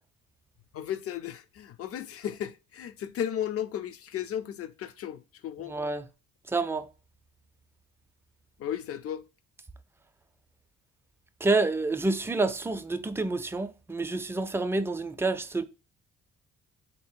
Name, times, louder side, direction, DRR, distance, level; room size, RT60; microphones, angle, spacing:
voice 1, 0.7-5.8 8.6-9.2, left 10 dB, 50° left, 0.5 m, -35 dB
voice 2, 5.6-6.0 6.5-6.9 11.4-15.6, right 3 dB, 10° right, 0.3 m, -28 dB
3.6 x 2.8 x 4.4 m
cardioid pair, 90°, 30 cm